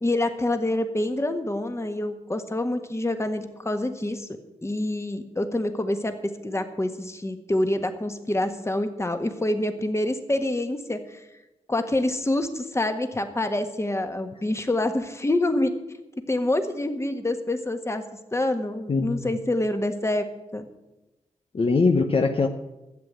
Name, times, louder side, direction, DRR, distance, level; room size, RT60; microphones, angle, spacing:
voice 1, 0.0-4.3 4.6-11.2 11.7-15.7 16.3-18.0 18.3-20.2 20.5-20.7, left 1 dB, 20° left, 7 dB, 1.6 m, -26 dB
voice 2, 18.9-19.3 21.5-22.5, left 4 dB, 50° left, 5 dB, 1.0 m, -22 dB
12.0 x 8.1 x 8.1 m, 0.99 s
cardioid pair, 55°, 12 cm